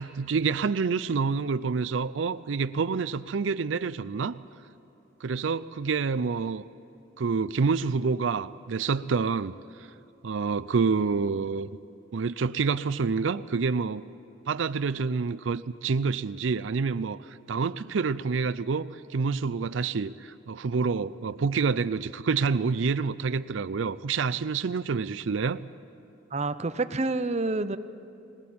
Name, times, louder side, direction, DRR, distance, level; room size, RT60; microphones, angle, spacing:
voice 1, 0.0-4.4 5.2-6.6 7.2-9.9 10.2-11.8 12.1-14.0 14.5-25.6, right 5 dB, 85° right, 15 dB, 0.5 m, -28 dB
voice 2, 26.3-27.8, right 3 dB, 35° right, 10 dB, 0.7 m, -28 dB
20.5 x 19.5 x 8.6 m, 2.6 s
head